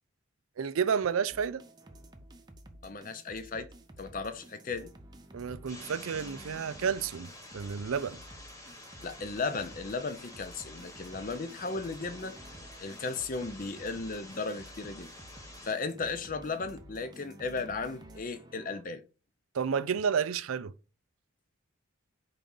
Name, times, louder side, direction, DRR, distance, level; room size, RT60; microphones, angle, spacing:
voice 1, 0.6-1.6 5.3-8.2 19.5-20.7, right 6 dB, 85° right, 0.4 m, -31 dB
sound 1, 1.3-18.8, right 1 dB, 20° right, 0.6 m, -52 dB
voice 2, 2.8-3.7 4.0-4.9 9.0-12.3 12.8-15.1 15.6-19.0, left 4 dB, 40° left, 0.6 m, -35 dB
sound 2, 5.7-15.7, left 1 dB, 15° left, 1.1 m, -49 dB
4.7 x 3.8 x 5.4 m
head